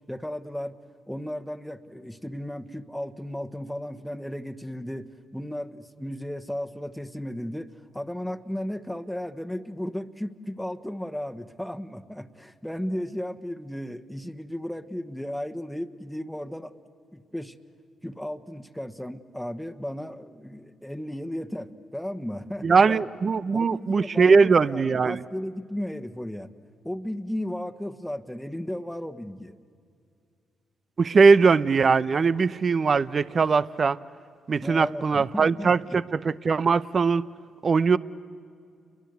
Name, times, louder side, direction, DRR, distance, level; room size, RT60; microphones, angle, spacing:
voice 1, 0.1-0.8 1.1-16.7 17.1-17.5 18.0-23.0 23.5-26.5 26.8-29.6 34.6-36.0, equal, 5° left, 7 dB, 1.3 m, -35 dB
voice 2, 22.6-25.2 31.0-34.0 34.5-37.2 37.6-38.0, right 5 dB, 45° right, 18 dB, 0.7 m, -20 dB
29.5 x 23.0 x 8.1 m, 2.3 s
supercardioid pair, 55°, 0 cm